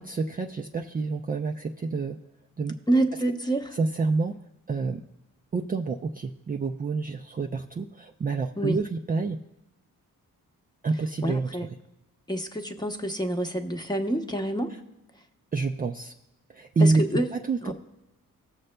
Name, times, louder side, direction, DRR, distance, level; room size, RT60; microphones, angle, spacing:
voice 1, 0.0-2.2 2.6-2.8 3.7-4.4 4.7-5.0 5.5-9.4 10.8-11.6 15.5-16.1 16.5-17.0 17.3-17.7, right 3 dB, 25° right, 3 dB, 0.4 m, -27 dB
voice 2, 2.9-3.7 8.6-8.8 11.2-11.7 12.3-14.7 16.8-17.3 17.6-17.7, right 1 dB, 10° left, 4 dB, 0.8 m, -27 dB
18.5 x 6.6 x 2.2 m, 0.95 s
cardioid pair, 85°, 34 cm